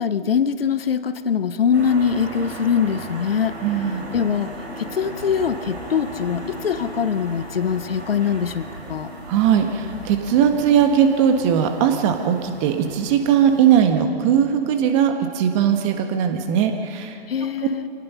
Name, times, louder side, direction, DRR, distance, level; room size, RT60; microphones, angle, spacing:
voice 1, 0.0-3.9 4.1-9.1 17.3-17.9, left 7 dB, 60° left, 13 dB, 0.9 m, -23 dB
sound 1, 1.7-13.8, right 1 dB, 85° right, 6.1 m, -36 dB
voice 2, 3.6-4.0 9.3-17.1, right 8 dB, 30° right, 6 dB, 1.6 m, -19 dB
26.0 x 18.5 x 5.8 m, 2.7 s
figure-of-eight pair, 125°, 32 cm